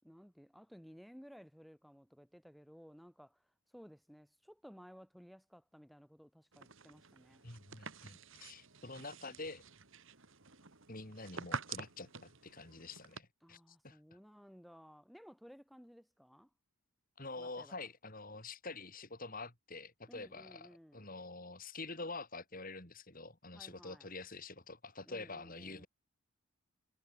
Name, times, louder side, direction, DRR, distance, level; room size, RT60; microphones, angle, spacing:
voice 1, 0.0-7.4 13.4-16.5 17.4-17.9 20.1-21.1 23.4-24.1 25.1-25.9, equal, ahead, 3.8 m, -57 dB
sound 1, 6.5-13.2, right 5 dB, 60° right, 2.4 m, -48 dB
voice 2, 7.4-9.6 10.9-14.0 17.2-25.9, left 3 dB, 40° left, 3.8 m, -47 dB
head